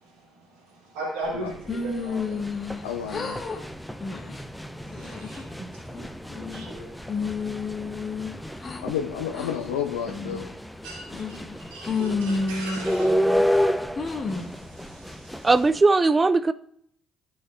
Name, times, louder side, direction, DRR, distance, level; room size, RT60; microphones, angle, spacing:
voice 1, 0.0-2.4 4.8-7.9 8.3-8.9 10.8-13.2 14.0-15.5, right 2 dB, 75° right, 2.9 m, -40 dB
sound 1, 1.3-15.8, equal, 5° left, 0.7 m, -31 dB
sound 2, 1.7-2.8 3.1-3.6 4.0-4.4 4.9-5.4 5.9-6.7 7.1-8.8 9.3-9.5 10.1-10.5 11.1-11.5 11.9-13.5 14.0-14.5, left 4 dB, 35° left, 1.4 m, -31 dB
voice 2, 2.8-3.4 8.8-10.5, left 9 dB, 80° left, 0.5 m, -30 dB
voice 3, 15.4-16.5, right 3 dB, 30° right, 0.4 m, -19 dB
15.0 x 6.2 x 2.4 m
figure-of-eight pair, 45°, 0 cm